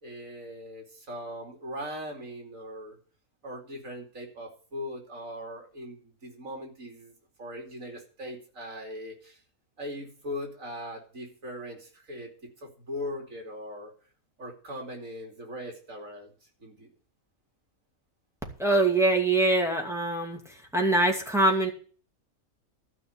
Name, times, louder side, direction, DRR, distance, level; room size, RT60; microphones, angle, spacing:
voice 1, 0.0-3.0 3.4-9.4 9.8-13.9 14.4-16.3 16.6-16.9, equal, 60° right, 2 dB, 3.2 m, -40 dB
voice 2, 18.6-20.4 20.7-21.7, right 2 dB, ahead, 0 dB, 2.3 m, -23 dB
13.0 x 5.6 x 8.7 m, 0.41 s
omnidirectional pair, 1.5 m